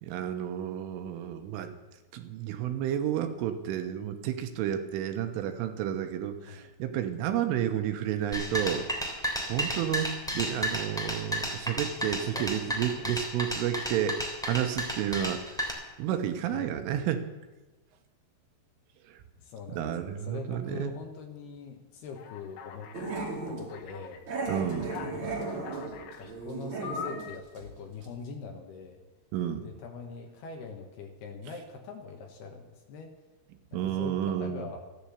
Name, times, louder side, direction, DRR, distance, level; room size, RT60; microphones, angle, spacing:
voice 1, 0.0-1.8 2.1-17.3 19.1-19.2 19.7-21.0 24.5-25.0 29.3-29.7 33.7-34.7, right 10 dB, 85° right, 7 dB, 3.5 m, -31 dB
sound 1, 8.3-15.7, equal, ahead, 1.9 m, -32 dB
voice 2, 12.2-13.2 16.5-16.7 19.4-22.9 23.5-24.2 25.1-29.0 29.6-33.1 33.7-34.8, left 5 dB, 65° left, 3 dB, 2.9 m, -43 dB
Alarm, 22.2-23.2 23.7-24.2 24.7-26.3 26.8-27.4, left 7 dB, 80° left, 4.0 m, -42 dB
Growling, 22.9-23.7 24.3-27.3 27.6-27.7 28.0-28.1, right 3 dB, 35° right, 2.3 m, -35 dB
15.0 x 10.5 x 8.1 m, 1.1 s
omnidirectional pair, 5.8 m